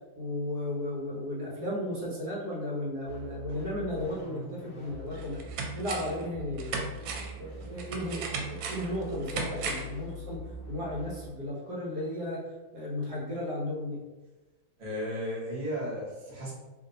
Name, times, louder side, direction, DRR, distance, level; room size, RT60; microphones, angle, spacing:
voice 1, 0.2-5.4 5.7-6.9 7.4-10.4 10.7-12.4 12.7-14.0, left 1 dB, 60° right, -5 dB, 1.4 m, -34 dB
sound 1, 3.0-11.3, left 1 dB, 25° left, 1.0 m, -43 dB
sound 2, 4.6-4.7 5.1-6.2 6.6-10.0 10.3-10.4, right 4 dB, 85° right, 1.3 m, -36 dB
voice 2, 14.8-16.5, equal, 30° right, -6 dB, 0.8 m, -34 dB
2.9 x 2.8 x 3.9 m, 1.2 s
omnidirectional pair, 2.1 m